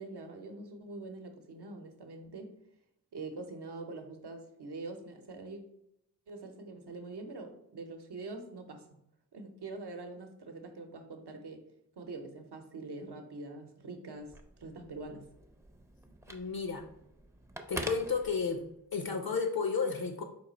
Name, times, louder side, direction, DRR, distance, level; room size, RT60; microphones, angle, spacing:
voice 1, 0.0-2.5 3.1-5.6 6.3-8.9 9.3-11.6 12.0-15.3, right 3 dB, 80° right, 4 dB, 0.8 m, -44 dB
Telephone, 14.2-18.9, right 1 dB, 10° right, 0.4 m, -46 dB
voice 2, 16.3-16.8 17.7-18.6 18.9-20.2, left 5 dB, 65° left, 5 dB, 0.6 m, -32 dB
4.6 x 2.4 x 4.0 m, 0.77 s
cardioid pair, 50°, 39 cm